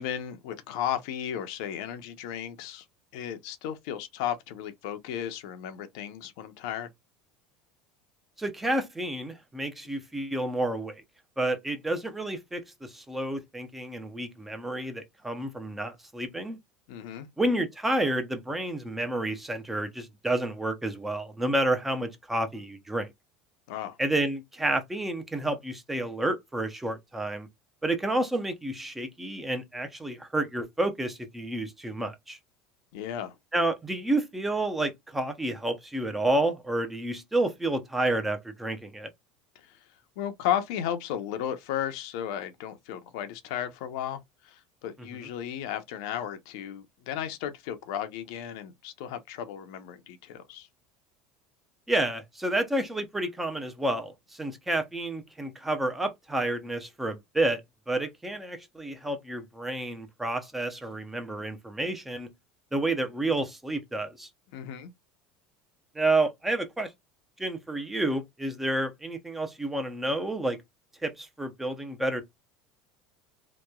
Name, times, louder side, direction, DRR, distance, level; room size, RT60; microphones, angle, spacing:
voice 1, 0.0-2.8 3.1-6.9 16.9-17.3 23.7-24.0 32.9-33.3 40.2-44.2 44.4-50.7 64.5-64.9, left 10 dB, 75° left, 0.6 m, -34 dB
voice 2, 8.4-11.0 11.4-16.6 17.4-23.1 24.0-27.5 27.8-32.4 33.5-39.1 51.9-57.6 57.9-62.3 62.7-64.3 65.9-66.9 67.4-70.6 71.0-72.2, right 1 dB, 10° right, 0.5 m, -30 dB
2.9 x 2.2 x 2.2 m
supercardioid pair, 130°, 3 cm